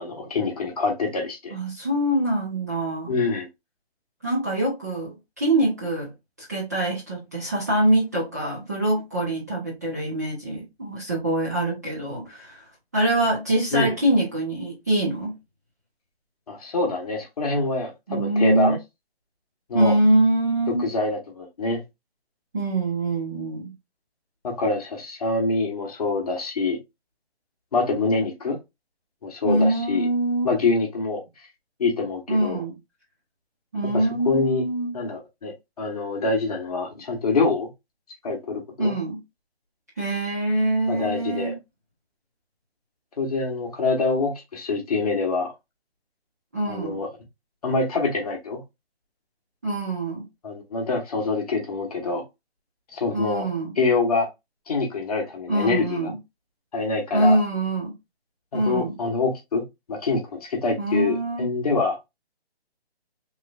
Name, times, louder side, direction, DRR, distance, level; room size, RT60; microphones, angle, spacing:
voice 1, 0.0-1.5 3.1-3.5 13.7-14.0 16.5-18.8 19.7-19.9 20.7-21.8 24.4-26.8 27.7-28.6 29.2-30.1 30.4-31.2 31.8-32.6 33.8-34.6 34.9-37.7 38.2-38.9 40.9-41.5 43.2-45.5 46.7-47.1 47.6-48.6 50.4-52.2 52.9-53.5 53.8-54.3 54.7-56.1 56.7-57.4 58.5-59.6 59.9-62.0, left 3 dB, 35° left, 1.0 m, -25 dB
voice 2, 1.5-3.1 4.2-6.1 6.5-12.7 12.9-15.4 18.1-18.8 19.7-20.9 22.5-23.7 29.4-30.5 32.3-32.7 33.7-34.9 38.8-39.2 40.0-41.6 46.5-47.0 49.6-50.3 53.1-53.7 55.5-56.2 57.1-58.0 58.5-59.0 60.8-61.5, right 1 dB, 15° right, 0.6 m, -24 dB
3.7 x 3.1 x 2.2 m
hypercardioid pair, 170°, 32 cm